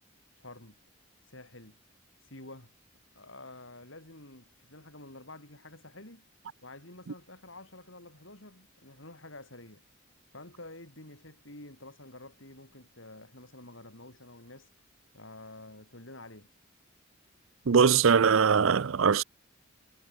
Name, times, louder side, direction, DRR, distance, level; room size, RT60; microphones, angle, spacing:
voice 1, 0.4-0.8 1.3-1.8 2.2-2.7 3.2-6.2 6.6-9.8 10.3-14.7 15.1-16.5, left 2 dB, 70° left, 7.1 m, -49 dB
voice 2, 17.7-19.2, right 6 dB, 75° right, 0.5 m, -21 dB
head